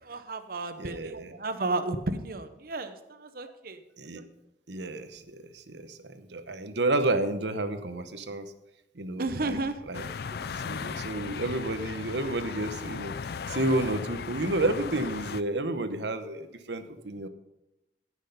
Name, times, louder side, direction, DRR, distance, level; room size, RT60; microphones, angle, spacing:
voice 1, 0.0-2.9 3.2-3.8 9.2-9.7, right 2 dB, 55° right, 10 dB, 0.9 m, -32 dB
voice 2, 0.8-1.4 4.0-4.2 4.7-8.5 8.9-9.6 9.9-10.4 10.6-17.3, right 2 dB, 80° right, 10 dB, 1.0 m, -31 dB
sound 1, 9.9-15.4, left 6 dB, 60° left, 0.4 m, -37 dB
15.5 x 6.4 x 5.3 m, 0.91 s
head